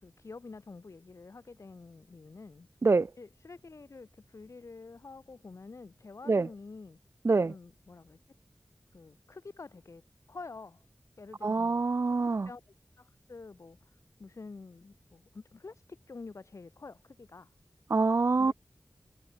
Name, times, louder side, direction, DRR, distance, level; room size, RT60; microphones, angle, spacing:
voice 1, 0.0-2.7 3.2-7.0 7.4-8.2 8.9-10.0 10.3-10.8 11.2-11.8 12.2-12.6 13.0-17.5 18.3-18.5, left 4 dB, 75° left, 5.9 m, -48 dB
voice 2, 11.4-12.5 17.9-18.5, right 3 dB, 55° right, 0.6 m, -25 dB
cardioid pair, 45°, 5 cm